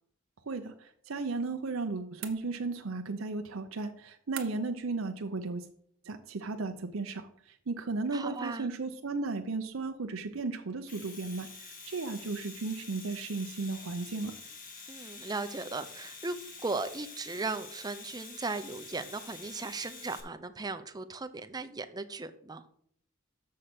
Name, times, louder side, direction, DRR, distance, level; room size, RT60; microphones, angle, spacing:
voice 1, 1.1-5.6 6.1-7.3 7.7-14.3, right 3 dB, 90° right, 6 dB, 0.7 m, -35 dB
sound 1, 2.2-2.9 4.4-4.9, right 10 dB, 70° right, 1.0 m, -45 dB
voice 2, 8.1-8.7 14.9-16.4 16.6-22.6, right 3 dB, 20° right, 9 dB, 0.5 m, -37 dB
Domestic sounds home sounds, 10.7-20.2, left 4 dB, 45° left, 1.6 m, -47 dB
6.6 x 6.5 x 5.9 m, 0.65 s
head